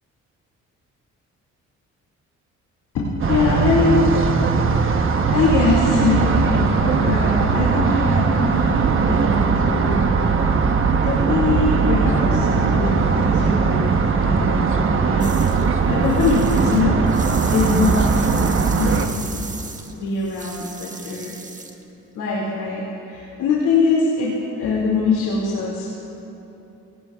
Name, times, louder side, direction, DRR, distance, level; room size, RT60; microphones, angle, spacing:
voice 1, 2.9-10.4 11.0-15.4 15.9-17.0 17.5-18.1 18.8-19.5 19.9-21.3 22.1-25.9, left 3 dB, 85° left, -6 dB, 2.5 m, -23 dB
sound 1, 3.2-19.1, right 5 dB, 45° right, 1.1 m, -19 dB
sound 2, 15.2-15.7 16.0-21.8, right 3 dB, 25° right, 1.4 m, -36 dB
26.0 x 18.0 x 2.4 m, 3.0 s
cardioid pair, 90°, 30 cm